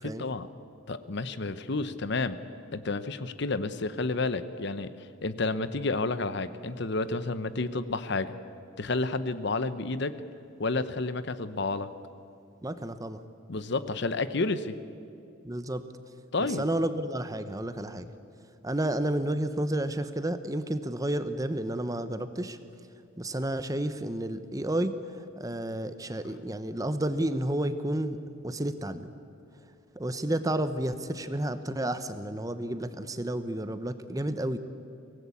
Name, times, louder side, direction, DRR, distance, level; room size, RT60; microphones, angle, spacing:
voice 1, 0.0-0.5 0.9-2.4 2.7-8.3 8.8-10.1 10.6-11.9 13.5-14.7 16.3-16.6, left 3 dB, 55° left, 13 dB, 0.9 m, -30 dB
voice 2, 12.6-13.2 15.4-15.8 16.4-18.1 18.6-22.6 23.2-29.1 30.0-34.6, right 1 dB, 15° right, 11 dB, 0.8 m, -31 dB
24.0 x 18.5 x 8.5 m, 2.6 s
head